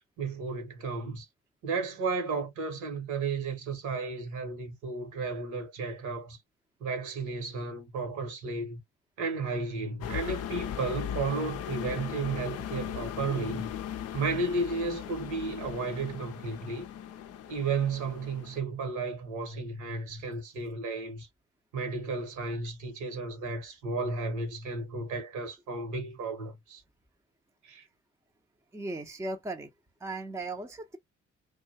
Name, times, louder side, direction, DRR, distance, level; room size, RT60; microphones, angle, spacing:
voice 1, 0.2-1.3 1.6-6.4 6.8-8.8 9.2-13.7 14.1-16.9 17.5-21.3 21.7-26.8 27.6-27.8, right 4 dB, 60° right, 1.1 m, -33 dB
sound 1, 10.0-18.6, left 10 dB, 45° left, 0.5 m, -38 dB
voice 2, 28.7-29.7 30.0-31.0, right 2 dB, 10° right, 0.6 m, -37 dB
2.6 x 2.3 x 2.7 m
figure-of-eight pair, 40°, 35 cm